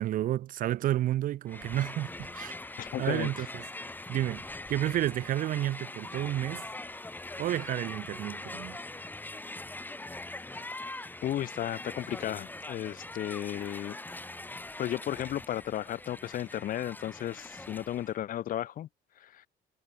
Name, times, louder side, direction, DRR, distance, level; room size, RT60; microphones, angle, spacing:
voice 1, 0.0-3.7 4.1-6.7 7.4-8.8, right 13 dB, 55° right, 0.4 m, -31 dB
Crowd, 1.5-18.2, left 2 dB, 10° left, 3.4 m, -42 dB
voice 2, 2.8-3.5 11.2-14.0 14.8-18.9 19.2-19.5, left 12 dB, 55° left, 0.8 m, -34 dB
cardioid pair, 110°, 17 cm